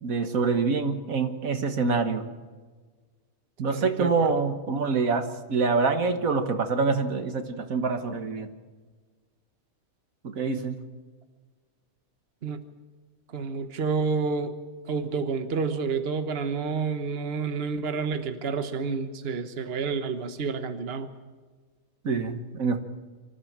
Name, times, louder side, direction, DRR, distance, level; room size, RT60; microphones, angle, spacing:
voice 1, 0.0-2.3 3.6-8.5 10.2-10.8 22.0-22.8, right 4 dB, 75° right, 7 dB, 1.9 m, -26 dB
voice 2, 3.7-4.3 12.4-12.6 13.3-14.5 14.9-21.1, right 5 dB, 45° right, 9 dB, 1.4 m, -29 dB
25.0 x 14.5 x 7.4 m, 1.4 s
omnidirectional pair, 1.5 m